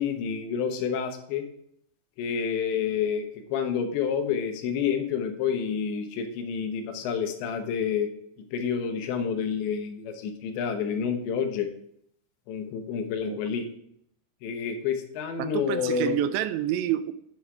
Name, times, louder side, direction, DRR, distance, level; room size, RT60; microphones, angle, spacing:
voice 1, 0.0-1.5 2.2-8.1 8.5-11.7 12.5-13.7 14.4-16.2, left 7 dB, 85° left, 5 dB, 3.5 m, -29 dB
voice 2, 15.4-17.1, right 11 dB, 85° right, 12 dB, 2.8 m, -28 dB
9.0 x 8.5 x 4.7 m, 0.69 s
omnidirectional pair, 5.0 m